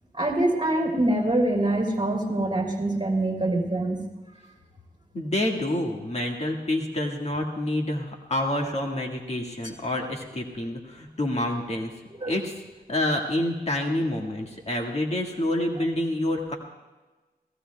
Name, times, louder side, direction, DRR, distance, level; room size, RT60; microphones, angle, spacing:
voice 1, 0.1-4.0 12.2-12.3, right 1 dB, 30° right, 0 dB, 3.0 m, -24 dB
voice 2, 5.1-11.9 12.3-12.5 12.9-16.6, left 1 dB, 40° left, 0 dB, 1.7 m, -28 dB
29.0 x 17.0 x 2.3 m, 1.2 s
wide cardioid pair, 110°, 17 cm